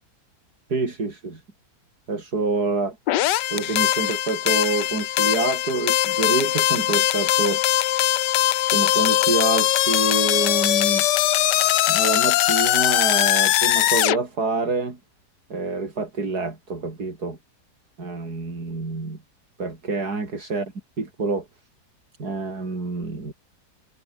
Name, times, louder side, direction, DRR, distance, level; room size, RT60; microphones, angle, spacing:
voice 1, 0.7-1.4 2.1-3.0 3.5-7.6 8.7-11.1 11.9-15.0 15.5-17.4 18.0-19.2 19.6-20.7 21.0-21.5 22.2-23.3, right 3 dB, 65° right, 4.6 m, -27 dB
sound 1, 3.1-14.2, left 14 dB, 80° left, 1.4 m, -21 dB
omnidirectional pair, 1.8 m